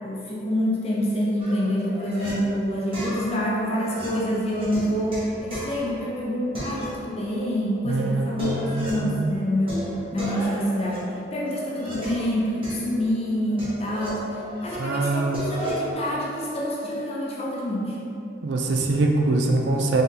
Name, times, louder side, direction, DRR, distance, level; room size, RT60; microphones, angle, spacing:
voice 1, 0.0-14.2 14.6-18.0, equal, 30° left, -4 dB, 0.6 m, -27 dB
sound 1, 1.4-2.3 2.9-6.2 6.5-7.4 7.7-7.8 8.2-9.1 9.7-12.3 12.6-14.7 15.0-15.9, equal, 30° right, 1.0 m, -35 dB
voice 2, 7.8-9.3 14.8-15.4 18.4-20.0, right 2 dB, 65° right, 2 dB, 0.4 m, -24 dB
3.7 x 3.5 x 2.8 m, 2.7 s
head